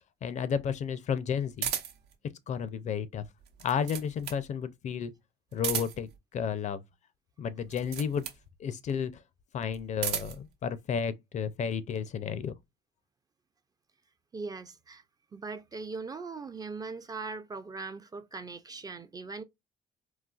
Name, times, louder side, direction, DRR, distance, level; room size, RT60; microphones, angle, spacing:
voice 1, 0.2-1.7 2.5-3.3 3.6-5.1 5.5-6.8 7.4-8.3 8.6-9.2 9.5-12.5, left 7 dB, 45° left, 0.4 m, -32 dB
sound 1, 1.6-2.1 3.4-4.5 5.5-6.2 7.6-8.4 9.7-10.5, right 9 dB, 75° right, 0.8 m, -35 dB
voice 2, 14.3-15.0 15.3-19.4, right 4 dB, 20° right, 0.4 m, -40 dB
3.9 x 2.4 x 2.3 m
cardioid pair, 110°, 17 cm